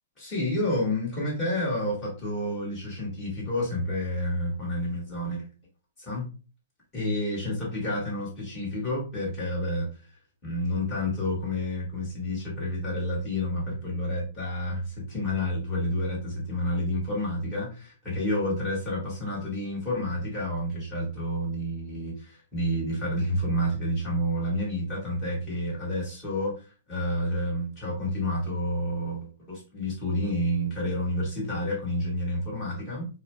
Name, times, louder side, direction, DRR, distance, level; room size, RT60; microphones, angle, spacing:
voice 1, 0.2-5.4 6.0-6.2 6.9-9.9 10.4-26.5 26.9-33.1, left 1 dB, 10° left, -6 dB, 1.5 m, -29 dB
4.5 x 2.0 x 3.1 m, 0.35 s
hypercardioid pair, 180°, 0 cm